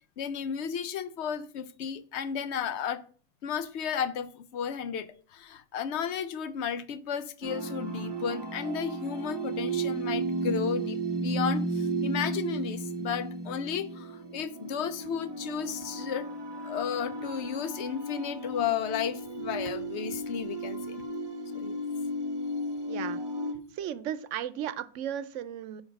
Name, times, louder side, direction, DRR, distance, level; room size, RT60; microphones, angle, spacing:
voice 1, 0.2-3.1 3.4-16.3 16.6-21.0 21.5-21.8, left 7 dB, 70° left, 0.9 m, -33 dB
sound 1, 7.4-23.5, right 2 dB, 25° right, 0.7 m, -34 dB
voice 2, 22.9-23.2 23.7-25.8, right 10 dB, 85° right, 0.9 m, -35 dB
5.9 x 5.1 x 5.2 m
omnidirectional pair, 1.2 m